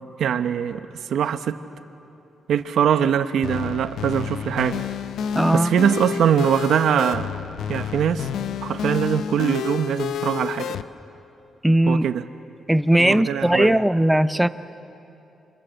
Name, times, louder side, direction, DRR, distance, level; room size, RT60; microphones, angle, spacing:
voice 1, 0.2-1.6 2.5-4.9 5.5-7.3 7.7-8.3 8.6-10.8 11.8-12.2 13.0-13.8, right 8 dB, 70° right, 1.0 m, -22 dB
sound 1, 3.4-10.8, left 8 dB, 80° left, 0.8 m, -29 dB
voice 2, 5.3-5.7 11.6-12.1 12.7-14.5, right 1 dB, 5° right, 0.6 m, -18 dB
27.5 x 27.5 x 7.9 m
wide cardioid pair, 165°, 0 cm